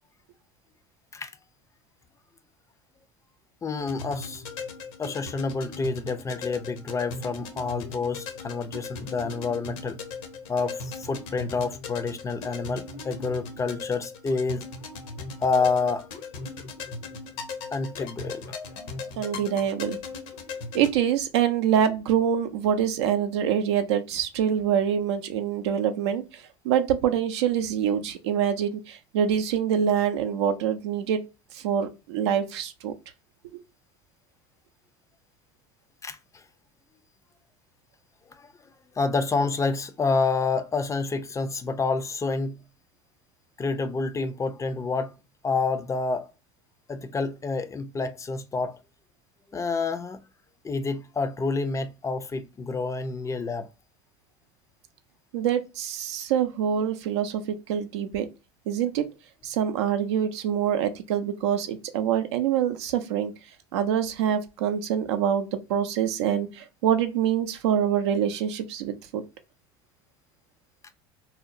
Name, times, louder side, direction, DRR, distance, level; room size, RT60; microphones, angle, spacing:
voice 1, 3.6-4.4 5.0-10.0 10.5-14.7 15.4-16.1 17.7-18.6 36.0-36.4 38.3-38.5 39.0-42.6 43.6-45.1 45.4-46.3 46.9-48.8 49.5-50.2 50.6-53.7, left 4 dB, 20° left, 0.4 m, -28 dB
sound 1, 3.8-20.9, left 3 dB, 60° left, 0.6 m, -38 dB
voice 2, 19.2-20.0 20.7-31.2 31.5-32.9 33.5-33.6 55.3-58.3 58.7-59.1 59.4-63.3 63.7-69.2, right 9 dB, 75° right, 0.4 m, -25 dB
2.7 x 2.0 x 2.4 m
hypercardioid pair, 75°, 14 cm